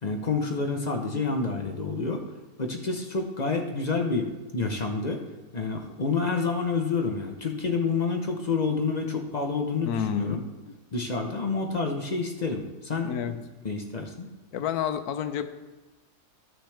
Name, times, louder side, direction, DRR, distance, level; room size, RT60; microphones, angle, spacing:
voice 1, 0.0-2.2 2.6-5.2 5.5-10.4 10.9-13.3 13.6-14.3, left 4 dB, 40° left, 4 dB, 0.6 m, -28 dB
voice 2, 9.8-10.4 10.7-10.8 13.0-13.4 14.5-15.5, left 9 dB, 75° left, 10 dB, 1.1 m, -29 dB
13.5 x 6.1 x 3.4 m, 1.1 s
omnidirectional pair, 1.7 m